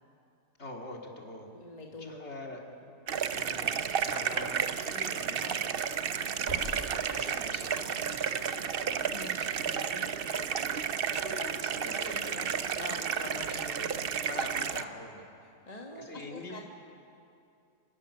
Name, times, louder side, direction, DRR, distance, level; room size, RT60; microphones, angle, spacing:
voice 1, 0.6-1.5 2.0-2.6 3.3-3.7 4.0-5.7 6.4-10.5 11.1-15.3 15.9-16.6, left 2 dB, 40° left, 0 dB, 2.8 m, -44 dB
voice 2, 1.5-2.4 2.8-2.9 10.3-10.9 13.5-13.7 15.4-16.6, left 2 dB, 25° left, 0 dB, 1.5 m, -47 dB
sound 1, 3.1-14.8, right 7 dB, 55° right, 0.6 m, -32 dB
sound 2, 4.0-4.3 4.6-5.1 5.4-5.5 5.9-7.2 7.5-7.6 8.1-8.2, equal, 35° right, 5.1 m, -45 dB
28.0 x 12.5 x 9.9 m, 2.5 s
omnidirectional pair, 1.7 m